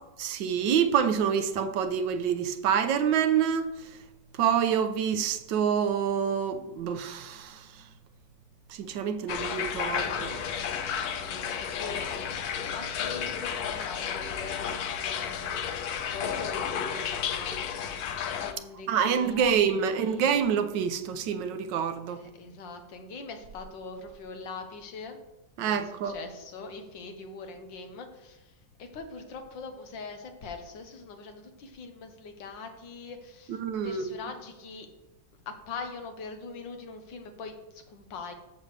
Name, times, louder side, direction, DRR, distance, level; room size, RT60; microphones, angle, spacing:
voice 1, 0.2-4.0 4.3-7.9 8.7-10.4 18.9-22.2 25.6-26.1 33.5-34.2, right 7 dB, 75° right, 1.4 m, -27 dB
sound 1, 9.3-18.5, left 8 dB, 65° left, 1.1 m, -32 dB
voice 2, 11.2-15.7 16.0-17.6 18.3-20.2 22.1-25.2 25.6-28.5 28.8-34.9 35.5-38.3, left 4 dB, 80° left, 1.7 m, -42 dB
13.5 x 6.3 x 3.3 m
omnidirectional pair, 2.0 m